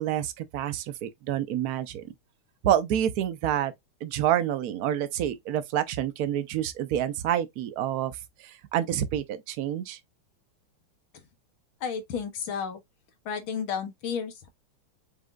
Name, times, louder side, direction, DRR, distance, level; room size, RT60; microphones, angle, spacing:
voice 1, 0.0-2.0 2.6-3.7 4.0-8.1 8.4-10.0, right 11 dB, 70° right, 0.9 m, -28 dB
voice 2, 11.8-12.8 13.3-14.5, left 7 dB, 70° left, 1.9 m, -32 dB
5.4 x 3.6 x 2.3 m
omnidirectional pair, 2.4 m